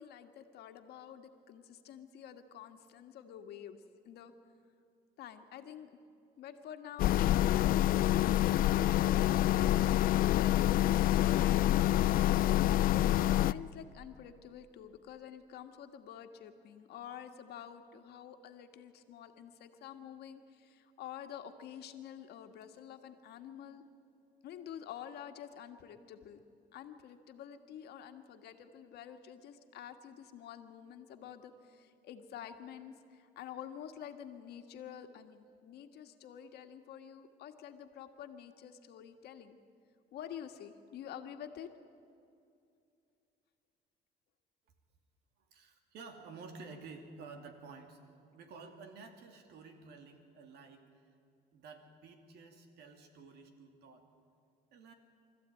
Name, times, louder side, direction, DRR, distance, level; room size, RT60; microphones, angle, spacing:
voice 1, 0.0-4.3 5.2-5.9 6.4-10.1 10.3-23.8 24.4-26.4 26.7-39.6 40.1-41.7, left 9 dB, 75° left, 6 dB, 1.6 m, -49 dB
sound 1, 7.0-13.5, left 13 dB, 60° left, 0.4 m, -27 dB
voice 2, 45.5-48.0 48.3-50.9 51.5-54.1 54.7-54.9, right 4 dB, 75° right, 5 dB, 2.7 m, -51 dB
24.5 x 14.5 x 9.1 m, 2.5 s
cardioid pair, 110°, 17 cm